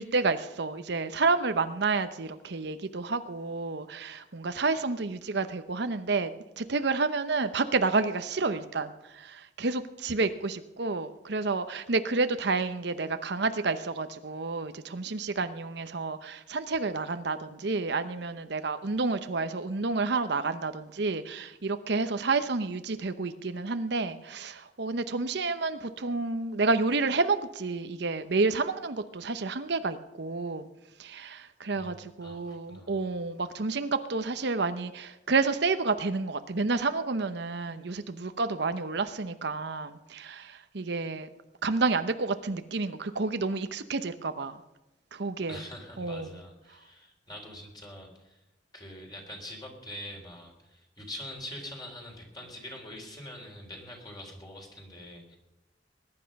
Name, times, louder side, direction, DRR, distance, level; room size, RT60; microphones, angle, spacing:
voice 1, 0.0-6.3 6.6-30.7 31.0-41.3 41.6-44.6 45.1-45.6 46.0-46.4, right 3 dB, 65° right, 10 dB, 0.8 m, -30 dB
voice 2, 31.7-33.2 45.5-48.4 48.7-55.4, left 1 dB, 25° left, 0 dB, 3.8 m, -44 dB
20.5 x 11.0 x 5.3 m, 0.97 s
head